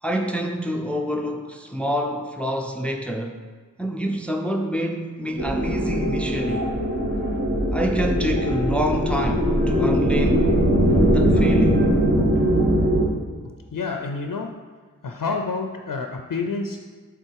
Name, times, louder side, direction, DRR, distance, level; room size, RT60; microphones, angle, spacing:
voice 1, 0.0-3.4 3.8-6.7 7.7-10.5 11.1-11.9, equal, 5° left, 3 dB, 0.6 m, -27 dB
sound 1, 5.4-13.1, equal, 35° right, 1.4 m, -20 dB
voice 2, 13.7-14.5 15.0-16.8, left 4 dB, 80° left, 4 dB, 0.5 m, -28 dB
7.9 x 3.7 x 4.6 m, 1.5 s
wide cardioid pair, 40°, 32 cm